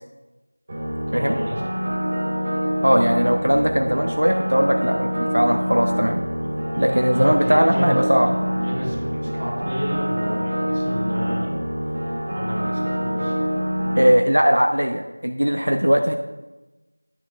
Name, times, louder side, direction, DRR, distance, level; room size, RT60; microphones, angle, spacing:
sound 1, 0.7-14.1, equal, 10° right, 0.6 m, -25 dB
voice 1, 1.1-1.6 6.4-8.3 8.6-11.6 11.8-13.4, equal, 30° right, -5 dB, 2.3 m, -31 dB
voice 2, 2.8-6.2 6.8-8.3 14.0-16.1, equal, 80° right, 4 dB, 0.7 m, -19 dB
12.0 x 7.2 x 2.3 m, 1.1 s
figure-of-eight pair, 180°, 0 cm